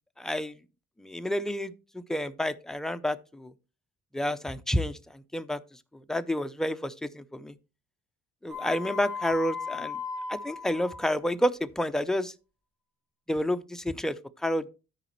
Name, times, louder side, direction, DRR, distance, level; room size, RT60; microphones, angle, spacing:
voice 1, 0.2-0.6 1.0-3.5 4.1-5.6 5.9-7.6 8.4-10.0 10.3-12.3 13.3-14.7, left 1 dB, ahead, 0.5 m, -30 dB
sound 1, 8.5-11.1, left 5 dB, 85° right, 2.9 m, -36 dB
13.0 x 5.0 x 3.1 m
cardioid pair, 90°, 30 cm